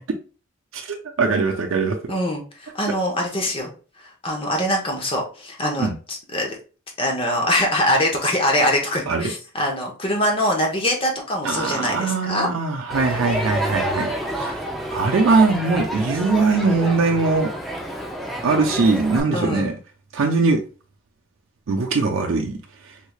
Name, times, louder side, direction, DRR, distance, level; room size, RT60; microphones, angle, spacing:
voice 1, 0.7-2.1 5.8-5.9 9.1-9.3 11.4-14.6 14.9-17.5 18.4-19.8 20.1-20.6 21.7-22.6, right 3 dB, 80° right, 0.5 m, -21 dB
voice 2, 2.1-3.7 4.2-6.6 7.0-12.5 19.3-19.7, left 1 dB, 30° left, 0.7 m, -23 dB
Crowd, 12.9-19.2, equal, ahead, 0.4 m, -29 dB
3.5 x 3.2 x 2.3 m
head